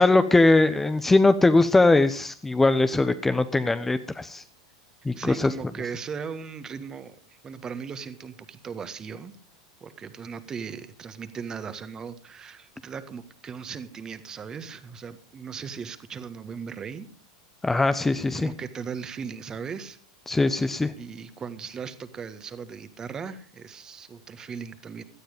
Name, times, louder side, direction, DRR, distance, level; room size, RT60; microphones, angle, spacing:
voice 1, 0.0-4.4 5.0-5.5 17.6-18.5 20.3-20.9, left 2 dB, 10° left, 11 dB, 0.9 m, -21 dB
voice 2, 5.1-9.3 9.8-17.1 18.3-20.0 20.9-25.0, right 6 dB, 25° right, 12 dB, 1.7 m, -38 dB
17.0 x 12.5 x 5.2 m, 0.42 s
figure-of-eight pair, 90°, 3 cm